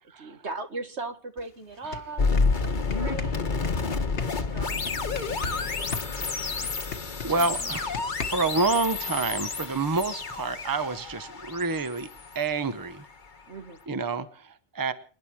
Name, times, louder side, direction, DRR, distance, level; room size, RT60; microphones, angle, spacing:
voice 1, 0.2-4.0 4.3-6.6 13.5-13.8, right 3 dB, 70° right, 7 dB, 2.1 m, -40 dB
sound 1, 1.4-1.5 1.8-5.6 5.9-8.6, left 5 dB, 75° left, 1.7 m, -37 dB
sound 2, 2.2-13.2, left 4 dB, 45° left, 1.3 m, -30 dB
voice 2, 7.2-12.1 12.3-13.1 13.9-14.9, right 3 dB, 20° right, 12 dB, 0.8 m, -28 dB
28.0 x 10.5 x 4.7 m, 0.40 s
omnidirectional pair, 1.2 m